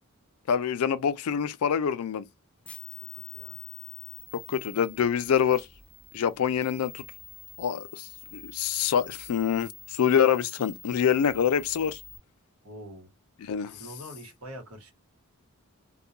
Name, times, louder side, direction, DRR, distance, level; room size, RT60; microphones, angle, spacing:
voice 1, 0.5-2.3 4.3-5.7 6.1-7.0 7.6-12.0 13.4-13.7, left 8 dB, 90° left, 0.4 m, -26 dB
sound 1, 2.6-12.2, left 8 dB, 5° left, 0.3 m, -46 dB
voice 2, 3.1-3.6 12.6-13.1 13.7-14.9, equal, 85° right, 1.1 m, -44 dB
2.3 x 2.1 x 2.8 m
head